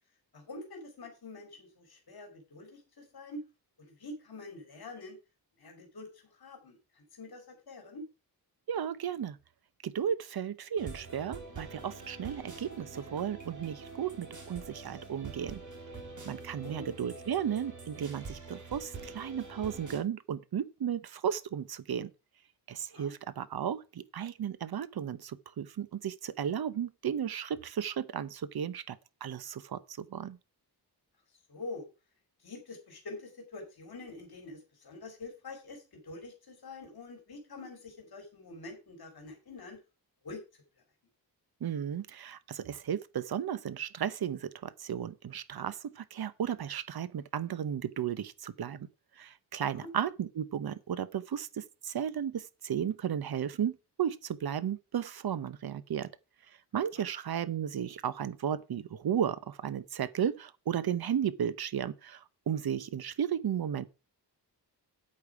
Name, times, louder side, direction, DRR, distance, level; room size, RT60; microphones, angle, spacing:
voice 1, 0.3-3.4 3.8-5.2 5.6-8.0 16.6-16.9 22.9-23.1 31.5-31.9 32.4-39.8 40.2-40.6 49.7-49.9 57.0-57.1, left 2 dB, 60° left, 2.9 m, -46 dB
voice 2, 8.7-9.4 9.8-15.6 16.2-22.1 22.7-30.4 41.6-48.9 49.2-56.1 56.7-62.2 62.5-63.8, right 9 dB, 60° right, 0.9 m, -34 dB
sound 1, 10.8-20.0, right 4 dB, 45° right, 3.8 m, -45 dB
8.7 x 8.6 x 4.8 m
wide cardioid pair, 105°, 41 cm